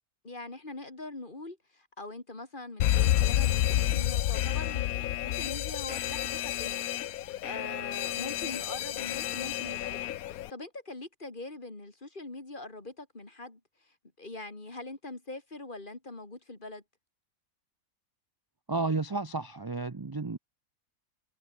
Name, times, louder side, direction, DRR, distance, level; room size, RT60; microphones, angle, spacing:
voice 1, 0.2-6.9 7.4-16.8, left 2 dB, 35° left, 3.1 m, -43 dB
Alarm, 2.8-10.5, left 13 dB, 80° left, 1.1 m, -30 dB
voice 2, 18.7-20.4, right 3 dB, 25° right, 0.5 m, -32 dB
omnidirectional pair, 1.5 m